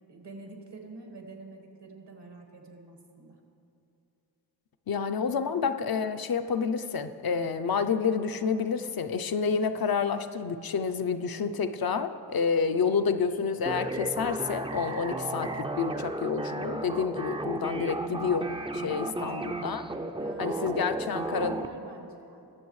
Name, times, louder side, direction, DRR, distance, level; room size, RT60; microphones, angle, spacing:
voice 1, 0.1-3.4 12.7-13.0 19.0-19.4 20.1-22.5, right 3 dB, 80° right, 2 dB, 1.6 m, -46 dB
voice 2, 4.9-19.8 20.4-21.5, left 6 dB, 60° left, 9 dB, 0.6 m, -29 dB
sound 1, 13.7-21.7, right 2 dB, 15° right, 0.4 m, -34 dB
20.5 x 7.0 x 3.1 m, 2.6 s
cardioid pair, 50°, 41 cm